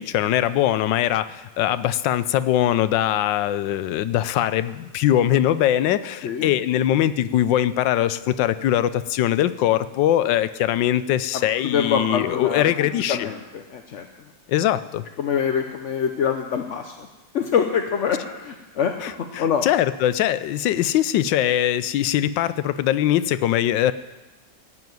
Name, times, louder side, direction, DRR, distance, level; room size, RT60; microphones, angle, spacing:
voice 1, 0.0-13.3 14.5-15.0 19.0-23.9, left 12 dB, 75° left, 14 dB, 1.3 m, -22 dB
voice 2, 11.3-14.0 15.2-17.1 17.3-19.6, left 7 dB, 55° left, 5 dB, 0.8 m, -25 dB
15.5 x 7.0 x 9.4 m, 1.1 s
omnidirectional pair, 2.0 m